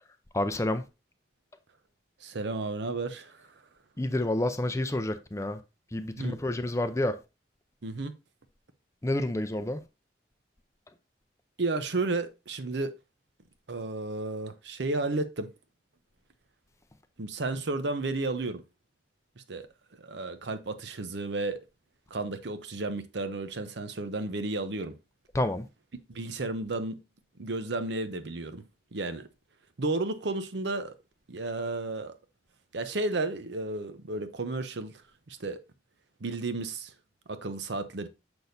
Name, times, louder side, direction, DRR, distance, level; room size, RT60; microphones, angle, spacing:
voice 1, 0.3-0.8 4.0-5.6 5.9-7.2 9.0-9.8 25.3-25.7, left 1 dB, 15° left, 0.5 m, -29 dB
voice 2, 2.2-3.5 6.2-6.4 7.8-8.1 11.6-12.9 13.7-15.5 17.2-18.6 19.4-19.7 20.0-21.6 22.1-24.9 26.1-27.0 27.4-28.6 28.9-29.3 29.8-30.9 31.3-32.1 32.7-34.9 35.3-35.6 36.2-36.9 37.3-38.1, right 2 dB, 70° right, 0.7 m, -32 dB
6.8 x 6.1 x 2.6 m
head